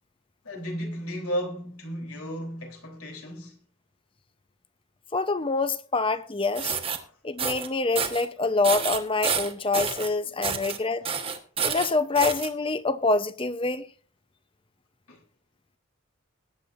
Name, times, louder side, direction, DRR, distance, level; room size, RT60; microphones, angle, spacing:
voice 1, 0.4-3.6 10.6-11.1 15.1-15.2, equal, 90° left, 3.4 m, -34 dB
voice 2, 5.1-6.8 7.2-11.1 11.6-13.9, left 3 dB, 25° left, 0.6 m, -26 dB
sound 1, 6.4-7.0 7.4-7.7 8.0-8.3 8.6-10.1 10.4-10.8 11.0-12.5, right 6 dB, 25° right, 1.2 m, -29 dB
21.0 x 9.5 x 2.5 m
head